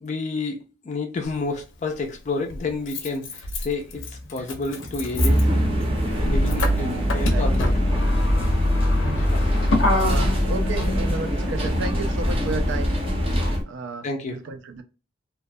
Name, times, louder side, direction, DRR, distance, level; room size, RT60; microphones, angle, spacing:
voice 1, 0.0-5.5 6.2-7.7 9.3-9.4 14.0-14.4, left 3 dB, 40° left, 0.3 m, -30 dB
Motor vehicle (road), 1.2-1.3 2.5-13.6, left 1 dB, 85° left, 0.6 m, -24 dB
sound 1, 3.9-13.5, left 1 dB, 10° left, 0.7 m, -41 dB
sound 2, 5.2-13.6, equal, 30° right, 0.6 m, -24 dB
voice 2, 7.3-7.7 9.0-13.0 13.7-14.8, right 3 dB, 70° right, 0.4 m, -33 dB
2.3 x 2.2 x 2.6 m
head